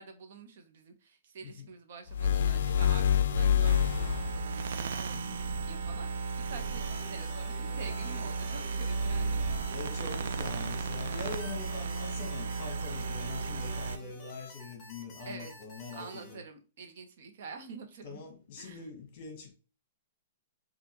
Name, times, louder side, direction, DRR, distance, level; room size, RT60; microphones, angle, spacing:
voice 1, 0.0-9.5 10.3-10.5 15.2-15.5 15.9-18.3 18.6-18.9, right 5 dB, 60° right, 0.8 m, -47 dB
sound 1, 2.1-4.5, left 9 dB, 70° left, 0.4 m, -26 dB
sound 2, 3.6-14.0, right 4 dB, 75° right, 0.3 m, -34 dB
sound 3, 6.5-16.3, left 2 dB, 15° left, 1.3 m, -51 dB
voice 2, 9.7-16.4 18.0-19.5, left 4 dB, 45° left, 1.1 m, -43 dB
5.2 x 2.4 x 3.0 m
hypercardioid pair, 160°, 0 cm